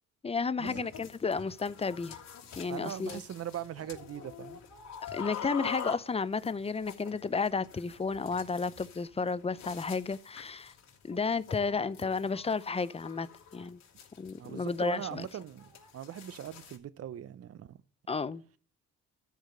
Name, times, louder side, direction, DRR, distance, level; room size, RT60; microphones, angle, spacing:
voice 1, 0.2-2.2 2.6-3.2 5.1-10.7 11.0-13.8 14.2-15.3 18.1-18.4, left 4 dB, 20° left, 0.6 m, -32 dB
sound 1, 0.6-16.8, left 7 dB, 65° left, 3.0 m, -46 dB
voice 2, 2.7-4.6 14.4-17.8, right 10 dB, 50° right, 0.7 m, -41 dB
13.0 x 5.1 x 6.6 m
cardioid pair, 90°, 30 cm